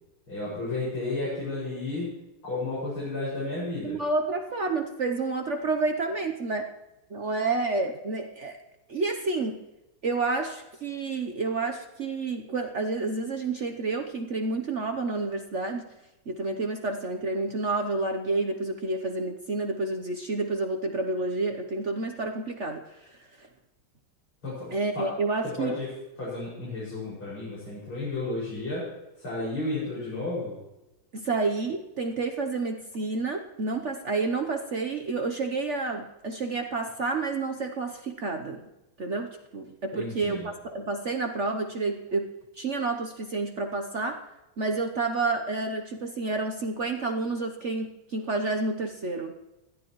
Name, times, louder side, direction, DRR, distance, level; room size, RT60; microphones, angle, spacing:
voice 1, 0.3-2.1 2.4-4.0 24.4-25.1 25.4-25.9 26.2-28.9 29.2-30.6 39.9-40.5, left 2 dB, 80° left, -9 dB, 6.8 m, -32 dB
voice 2, 3.8-6.7 7.1-8.6 8.9-9.6 10.0-15.8 16.3-23.5 24.7-25.7 31.1-38.7 39.0-42.3 42.6-44.2 44.6-49.3, right 3 dB, 50° right, 5 dB, 0.9 m, -29 dB
20.5 x 14.5 x 3.1 m, 0.98 s
omnidirectional pair, 2.3 m